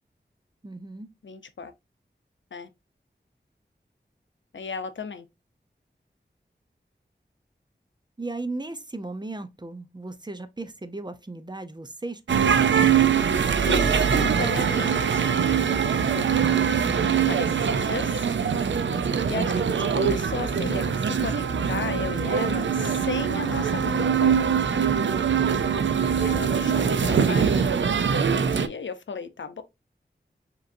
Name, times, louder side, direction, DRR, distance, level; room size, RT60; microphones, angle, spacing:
voice 1, 0.6-1.1 8.2-13.5 19.3-19.8, right 2 dB, 25° right, 0.6 m, -37 dB
voice 2, 1.2-1.7 2.5-2.7 4.5-5.2 13.6-15.4 16.1-18.3 19.2-24.6 26.2-27.7 28.2-29.6, left 5 dB, 90° left, 0.6 m, -35 dB
sound 1, 12.3-28.7, right 7 dB, 90° right, 0.4 m, -23 dB
5.0 x 3.0 x 2.5 m
wide cardioid pair, 65°, 19 cm